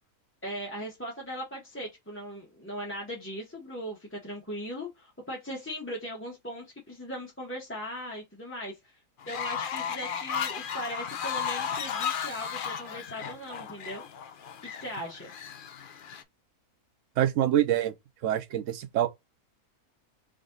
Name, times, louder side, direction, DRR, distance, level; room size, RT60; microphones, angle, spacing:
voice 1, 0.4-9.0 9.3-14.1 14.6-15.3, equal, 10° left, 0.9 m, -39 dB
Fowl, 9.2-16.2, left 7 dB, 70° left, 0.4 m, -34 dB
voice 2, 17.2-17.9 18.2-19.1, right 11 dB, 65° right, 0.8 m, -25 dB
3.7 x 3.4 x 3.8 m
omnidirectional pair, 1.6 m